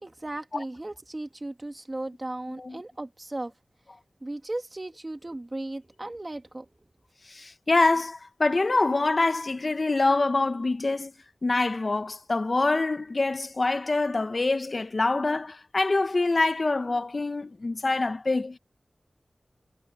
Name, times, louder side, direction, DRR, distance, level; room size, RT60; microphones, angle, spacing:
voice 1, 0.0-3.5 4.2-6.7, right 2 dB, 35° right, 2.5 m, -36 dB
voice 2, 7.2-11.1 11.4-18.6, left 3 dB, 55° left, 1.1 m, -25 dB
cardioid pair, 50°, 0 cm